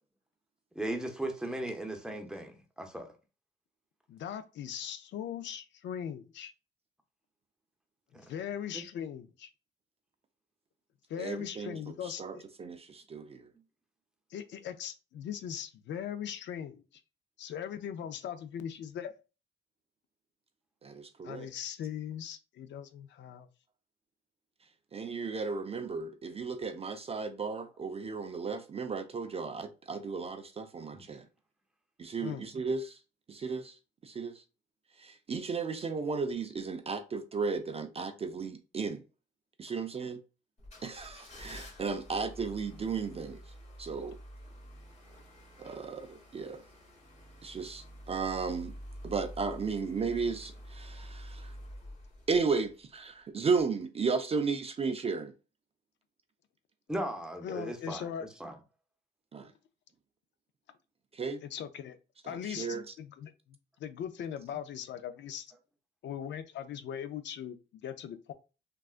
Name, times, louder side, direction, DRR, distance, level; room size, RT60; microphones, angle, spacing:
voice 1, 0.7-3.1 8.7-8.8 30.9-31.0 56.9-58.1 58.4-58.5, right 1 dB, 5° right, 0.7 m, -37 dB
voice 2, 4.1-6.5 8.3-9.5 11.1-12.4 14.3-16.8 17.4-19.2 21.2-23.5 32.2-32.4 57.4-58.3 61.4-62.0 62.2-63.3 63.8-65.5 66.0-68.3, left 9 dB, 65° left, 0.4 m, -39 dB
voice 3, 11.2-13.5 20.8-21.5 24.9-31.2 32.0-33.0 33.3-33.8 34.0-34.4 35.0-39.0 39.6-40.2 40.8-43.4 43.8-44.2 45.6-46.6 47.4-48.7 49.0-51.5 52.3-55.3 59.3-59.5 61.1-61.4 62.2-62.9, right 4 dB, 30° right, 0.4 m, -34 dB
motor car, 40.6-53.1 53.5-53.6, equal, 35° left, 1.6 m, -48 dB
3.5 x 2.3 x 2.4 m
cardioid pair, 90°, 20 cm